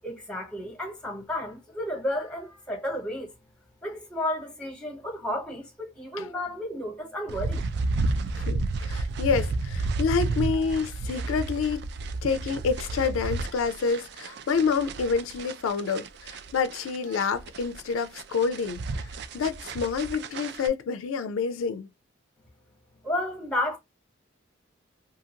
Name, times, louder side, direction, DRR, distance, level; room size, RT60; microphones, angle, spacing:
voice 1, 0.0-3.3 3.8-7.7 22.9-23.8, left 1 dB, 5° left, 0.9 m, -32 dB
sound 1, 7.3-20.7, right 3 dB, 55° right, 0.3 m, -32 dB
voice 2, 8.3-11.9 12.2-19.1 19.3-21.9, left 5 dB, 90° left, 0.4 m, -28 dB
2.7 x 2.5 x 2.7 m
head